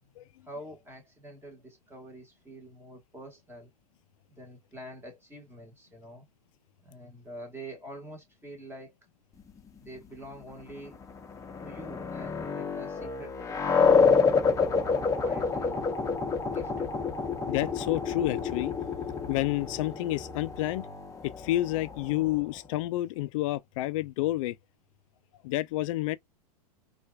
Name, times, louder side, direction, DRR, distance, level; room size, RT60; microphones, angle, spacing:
voice 1, 0.1-3.7 4.3-6.3 6.8-8.9 9.8-11.0 11.6-13.3 13.8-14.2 14.5-15.8 16.5-16.9, equal, 10° right, 1.4 m, -46 dB
sound 1, 11.1-22.5, left 5 dB, 15° left, 0.8 m, -28 dB
voice 2, 17.5-18.7 19.3-20.9 21.2-24.6 25.4-26.2, left 16 dB, 55° left, 0.5 m, -29 dB
4.4 x 2.5 x 2.2 m
hypercardioid pair, 115°, 20 cm